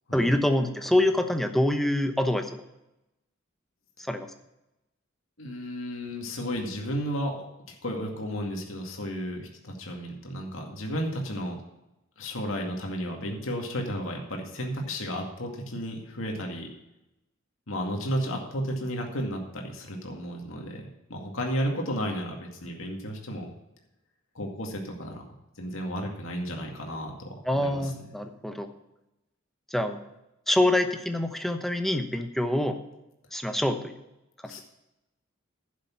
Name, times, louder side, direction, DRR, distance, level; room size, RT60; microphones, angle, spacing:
voice 1, 0.1-2.5 4.1-4.3 27.5-28.7 29.7-30.0 30.5-32.8 33.3-33.9 34.4-34.5, left 1 dB, ahead, 6 dB, 0.9 m, -25 dB
voice 2, 5.4-11.6 12.2-16.7 17.7-23.5 24.3-25.2 25.6-27.9 34.4-34.6, equal, 80° left, 1 dB, 2.2 m, -33 dB
11.0 x 7.5 x 5.7 m, 0.92 s
head